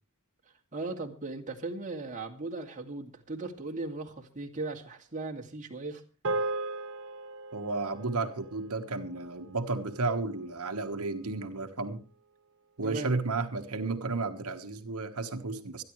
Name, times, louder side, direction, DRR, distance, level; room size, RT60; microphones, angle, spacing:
voice 1, 0.5-6.0 12.8-13.1, right 3 dB, 35° right, 2.3 m, -38 dB
sound 1, 6.2-10.8, right 2 dB, 60° right, 1.1 m, -38 dB
voice 2, 7.5-12.0 12.8-15.8, right 3 dB, 85° right, 1.4 m, -33 dB
25.5 x 10.5 x 3.2 m
head